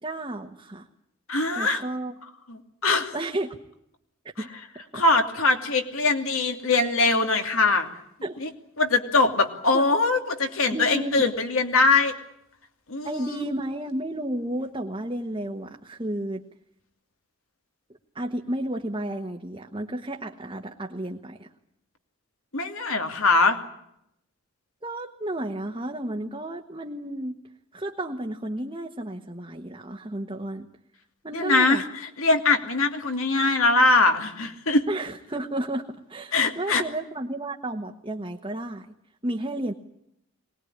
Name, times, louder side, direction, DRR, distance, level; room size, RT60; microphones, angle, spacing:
voice 1, 0.0-0.9 1.5-2.1 3.1-3.6 4.4-4.5 4.9-5.0 8.2-8.4 9.7-9.8 10.7-11.1 13.0-16.4 18.1-21.5 24.8-27.4 27.7-30.7 31.2-31.8 34.9-38.9 39.2-39.7, right 1 dB, 25° right, 1 dB, 1.2 m, -32 dB
voice 2, 1.3-1.8 2.5-3.2 4.9-7.9 8.4-8.5 8.8-12.1 12.9-13.4 22.5-23.6 31.3-34.9 36.3-36.8, left 3 dB, 70° left, 5 dB, 2.7 m, -22 dB
23.5 x 19.5 x 10.0 m, 0.79 s
head